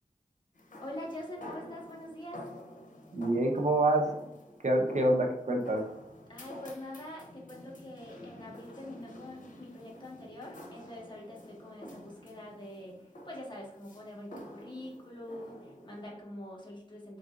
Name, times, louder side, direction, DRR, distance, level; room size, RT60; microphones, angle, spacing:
sound 1, 0.6-16.0, left 1 dB, 85° left, 0.8 m, -49 dB
voice 1, 0.8-2.4 6.3-17.2, left 1 dB, 35° left, -3 dB, 1.4 m, -44 dB
voice 2, 3.1-4.1 4.6-5.8, right 1 dB, 65° right, 1 dB, 0.7 m, -26 dB
4.0 x 3.8 x 2.5 m, 0.82 s
wide cardioid pair, 70°, 13 cm